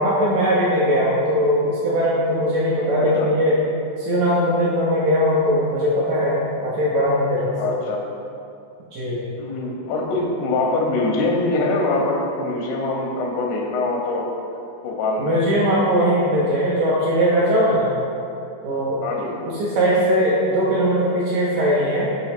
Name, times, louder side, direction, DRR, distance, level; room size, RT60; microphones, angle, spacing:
voice 1, 0.0-3.6 4.0-7.7 8.9-9.2 15.2-18.0 18.6-19.0 19.4-22.1, equal, 75° right, -7 dB, 2.1 m, -20 dB
voice 2, 7.6-8.0 9.4-14.3 14.8-15.4 19.0-19.3, left 2 dB, 85° left, 0 dB, 3.0 m, -23 dB
6.8 x 3.1 x 5.8 m, 2.6 s
omnidirectional pair, 4.8 m